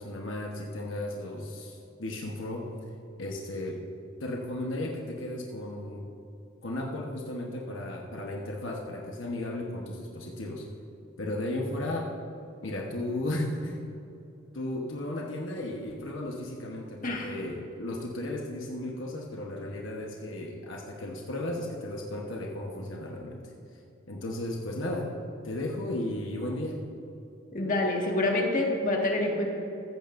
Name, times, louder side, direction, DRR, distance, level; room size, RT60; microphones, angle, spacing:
voice 1, 0.0-2.7 3.2-3.8 4.2-6.1 6.6-10.6 11.2-12.1 12.6-13.8 14.5-23.5 24.1-25.1 25.4-26.8, left 1 dB, 75° left, -1 dB, 1.2 m, -35 dB
voice 2, 27.5-29.5, left 2 dB, 45° left, -1 dB, 1.8 m, -27 dB
15.0 x 14.5 x 2.6 m, 2.7 s
head